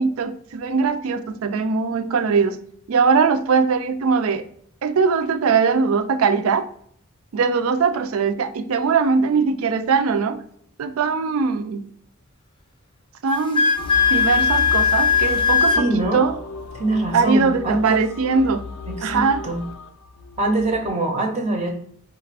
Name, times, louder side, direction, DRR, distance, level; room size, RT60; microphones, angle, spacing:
voice 1, 0.0-2.6 2.9-4.5 4.8-6.7 7.3-10.4 10.8-11.9 13.2-13.6 14.1-16.4 17.1-18.6 19.0-19.4, right 5 dB, 70° right, 10 dB, 0.4 m, -21 dB
Wind instrument woodwind instrument, 13.3-15.9, left 6 dB, 25° left, 0.4 m, -18 dB
sound 1, 13.8-20.9, left 2 dB, 85° left, 0.5 m, -35 dB
voice 2, 15.7-16.2 16.7-18.0 18.9-19.6 20.4-21.7, right 2 dB, 30° right, 2 dB, 0.6 m, -23 dB
4.9 x 2.4 x 3.3 m, 0.63 s
head